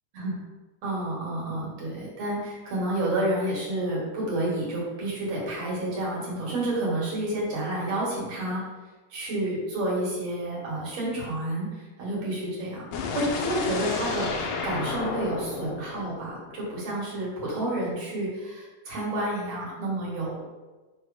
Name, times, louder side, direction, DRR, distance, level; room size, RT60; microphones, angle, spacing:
voice 1, 0.8-8.6 9.1-20.4, right 1 dB, 60° right, -5 dB, 2.9 m, -30 dB
sound 1, 12.9-16.9, left 5 dB, 75° left, 2.0 m, -32 dB
7.1 x 3.1 x 4.9 m, 1.2 s
omnidirectional pair, 3.4 m